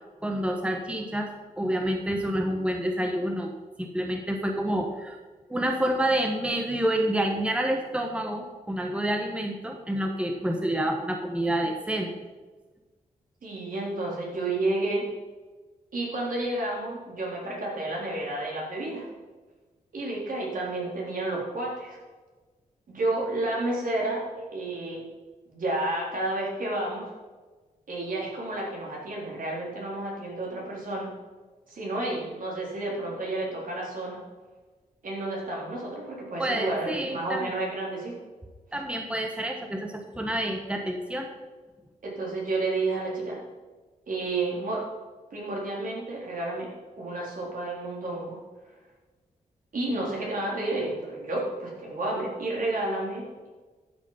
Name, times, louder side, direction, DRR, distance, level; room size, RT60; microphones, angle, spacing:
voice 1, 0.2-1.3 1.6-5.2 5.5-12.1 36.4-37.5 38.7-41.3, right 1 dB, 10° right, 3 dB, 1.3 m, -28 dB
voice 2, 13.4-15.1 15.9-19.1 19.9-22.0 22.9-25.1 25.5-27.1 27.9-31.1 31.7-34.2 35.0-38.2 42.0-43.4 44.1-44.9 45.3-48.4 49.7-53.5, right 2 dB, 70° right, -3 dB, 3.6 m, -31 dB
12.0 x 6.4 x 5.6 m, 1.3 s
cardioid pair, 80°, 15 cm